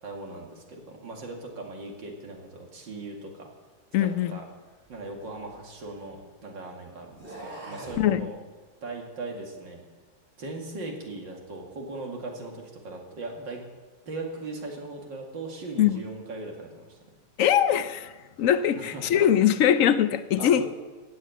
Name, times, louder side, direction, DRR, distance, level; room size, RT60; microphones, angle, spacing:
voice 1, 0.0-3.5 4.0-4.4 4.9-8.4 8.8-9.8 10.4-13.6 14.1-17.0 18.7-19.2 20.4-20.7, right 2 dB, 80° right, 2.9 m, -39 dB
voice 2, 3.9-4.4 8.0-8.3 15.8-16.0 17.4-18.1 18.4-20.6, left 10 dB, 65° left, 0.8 m, -22 dB
sound 1, 4.8-6.3 7.1-8.1, right 2 dB, 30° right, 4.0 m, -44 dB
15.5 x 8.1 x 9.2 m
omnidirectional pair, 2.0 m